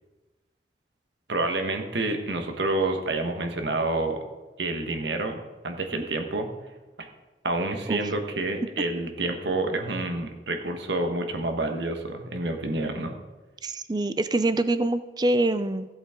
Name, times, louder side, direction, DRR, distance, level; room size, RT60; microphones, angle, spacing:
voice 1, 1.3-4.2 4.6-6.5 7.0-7.1 7.4-13.1, right 2 dB, 75° right, 5 dB, 1.3 m, -28 dB
voice 2, 13.6-15.9, right 2 dB, 25° right, 12 dB, 0.4 m, -25 dB
15.0 x 8.0 x 3.7 m, 1.2 s
head